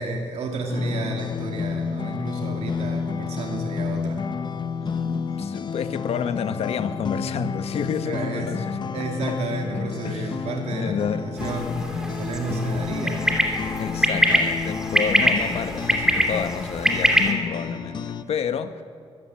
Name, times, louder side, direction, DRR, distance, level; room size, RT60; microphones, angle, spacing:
voice 1, 0.0-4.2 8.0-8.5 8.9-13.4, right 3 dB, 80° right, 2.5 m, -31 dB
sound 1, 0.7-18.2, left 5 dB, 45° left, 1.1 m, -30 dB
voice 2, 4.8-8.8 9.3-9.4 10.0-10.3 10.8-11.2 13.8-18.8, left 7 dB, 70° left, 1.3 m, -29 dB
sound 2, 11.4-17.3, equal, 5° right, 2.7 m, -23 dB
22.0 x 15.0 x 8.9 m
cardioid pair, 120°, 11 cm